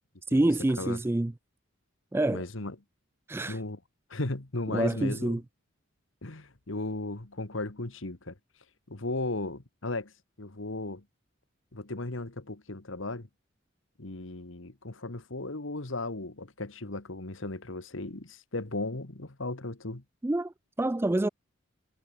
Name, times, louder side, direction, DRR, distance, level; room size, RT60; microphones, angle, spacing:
voice 1, 0.3-1.3 2.1-2.4 3.3-3.6 4.7-5.4 20.2-21.3, right 1 dB, 10° right, 0.3 m, -27 dB
voice 2, 2.3-2.8 3.5-3.8 4.1-5.4 6.2-8.3 8.9-10.1 10.4-11.0 11.7-13.3 14.0-20.0, left 2 dB, 70° left, 1.8 m, -36 dB
head